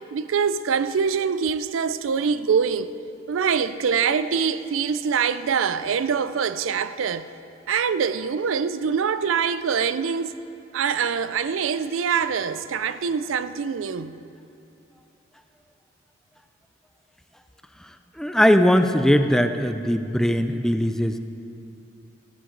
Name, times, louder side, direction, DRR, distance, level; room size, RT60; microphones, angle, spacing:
voice 1, 0.1-2.9 3.3-7.3 7.7-10.3 10.7-14.2, right 6 dB, 85° right, 0.4 m, -24 dB
voice 2, 18.2-21.2, equal, 5° left, 0.4 m, -20 dB
14.0 x 14.0 x 3.9 m
head